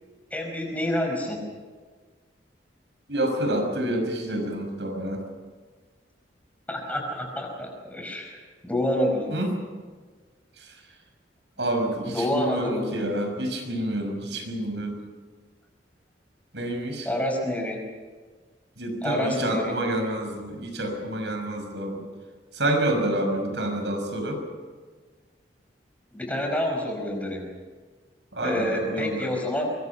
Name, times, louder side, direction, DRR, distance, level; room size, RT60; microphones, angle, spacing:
voice 1, 0.3-1.5 5.0-5.1 6.7-8.4 8.6-9.3 12.1-12.9 17.1-17.8 19.0-19.7 21.3-21.4 26.1-27.5 28.4-29.7, left 1 dB, 10° left, 1 dB, 5.3 m, -28 dB
voice 2, 3.1-5.2 9.3-9.5 11.6-14.9 16.5-17.1 18.8-22.1 22.5-24.4 28.3-29.3, right 1 dB, 80° right, 4 dB, 5.9 m, -28 dB
25.5 x 22.5 x 5.8 m, 1.4 s
head